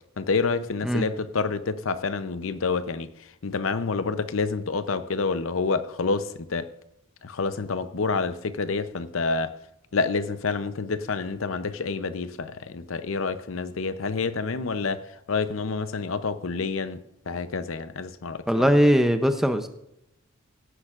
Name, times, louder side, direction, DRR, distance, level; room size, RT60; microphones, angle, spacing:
voice 1, 0.2-6.7 7.2-9.5 9.9-18.8, left 4 dB, 70° left, 12 dB, 0.7 m, -28 dB
voice 2, 18.5-19.7, equal, ahead, 8 dB, 0.6 m, -20 dB
17.0 x 9.9 x 2.5 m, 0.81 s
head